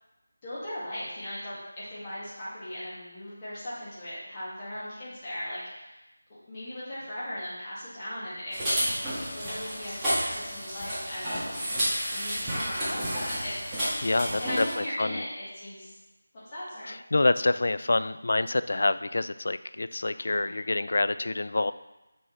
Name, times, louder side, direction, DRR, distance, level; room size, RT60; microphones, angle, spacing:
voice 1, 0.4-6.0 6.3-11.4 12.1-14.1 14.4-16.0 16.3-17.0 20.1-20.6, left 1 dB, 20° left, -10 dB, 2.0 m, -38 dB
sound 1, 8.5-14.7, equal, 5° right, 1.6 m, -31 dB
voice 2, 14.0-15.2 16.8-21.7, left 2 dB, 60° left, 13 dB, 0.3 m, -27 dB
7.5 x 5.4 x 3.2 m, 1.0 s
figure-of-eight pair, 170°, 0 cm